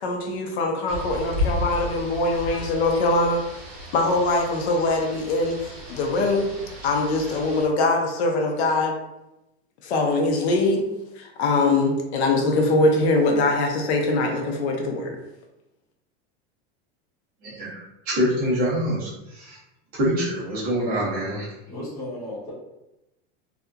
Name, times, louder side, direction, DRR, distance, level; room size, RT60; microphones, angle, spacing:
voice 1, 0.0-3.4 3.9-6.5 6.8-8.9 9.8-10.9 11.2-15.2, left 2 dB, 80° left, 2 dB, 0.7 m, -22 dB
Rain, 0.9-7.7, left 2 dB, 60° right, 1.3 m, -34 dB
voice 2, 17.4-19.6 19.9-21.5, equal, 25° right, -7 dB, 0.8 m, -25 dB
voice 3, 21.7-22.5, left 1 dB, 10° left, -9 dB, 0.4 m, -34 dB
2.8 x 2.4 x 2.3 m, 0.93 s
supercardioid pair, 170°, 32 cm